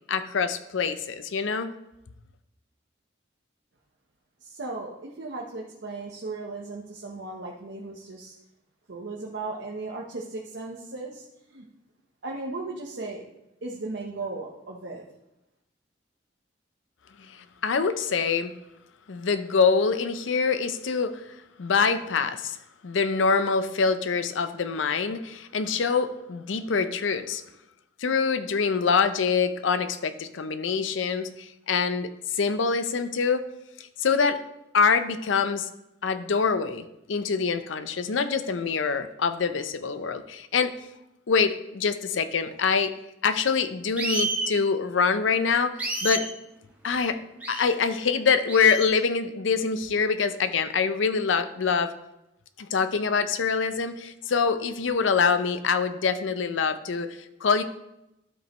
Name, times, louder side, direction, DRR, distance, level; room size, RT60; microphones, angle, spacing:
voice 1, 0.1-1.7 17.2-18.5 19.1-21.1 21.6-22.6 22.8-27.4 28.0-33.5 33.8-34.4 34.7-35.7 36.0-40.7 41.3-42.9 43.2-46.3 46.8-47.2 47.5-51.9 52.6-57.6, left 5 dB, 90° left, 11 dB, 0.6 m, -25 dB
voice 2, 4.4-8.4 8.9-11.7 12.2-13.2 13.6-15.0, right 3 dB, 75° right, -1 dB, 0.9 m, -36 dB
sound 1, 44.0-44.5 45.8-46.3 47.4-47.7 48.5-48.9, right 2 dB, 10° right, 1.0 m, -29 dB
12.0 x 5.2 x 3.0 m, 0.88 s
head